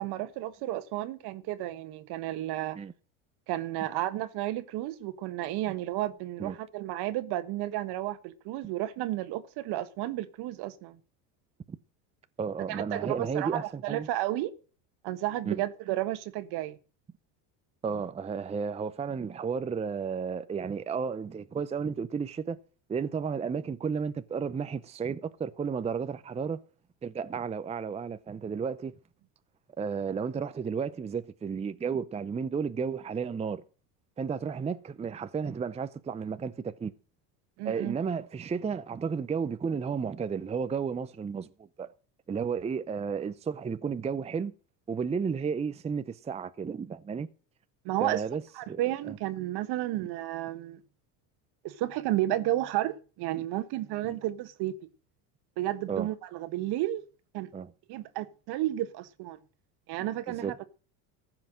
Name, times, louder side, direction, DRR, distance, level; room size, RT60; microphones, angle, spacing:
voice 1, 0.0-2.8 3.5-11.0 12.7-14.5 15.0-16.8 37.6-38.0 47.8-48.2 48.5-50.8 51.6-54.7 55.6-57.0 57.3-57.5 57.9-59.4 59.9-60.6, right 15 dB, 65° right, 1.5 m, -32 dB
voice 2, 12.4-14.1 15.4-15.6 17.8-22.6 22.9-26.6 27.0-29.0 29.8-33.6 34.2-36.9 37.6-41.5 41.8-41.9 42.3-44.5 44.9-47.3 48.0-49.2 54.0-54.2 55.9-56.1 57.5-57.7 60.3-60.6, right 6 dB, 15° right, 0.6 m, -33 dB
15.0 x 5.9 x 7.6 m
supercardioid pair, 115°, 42 cm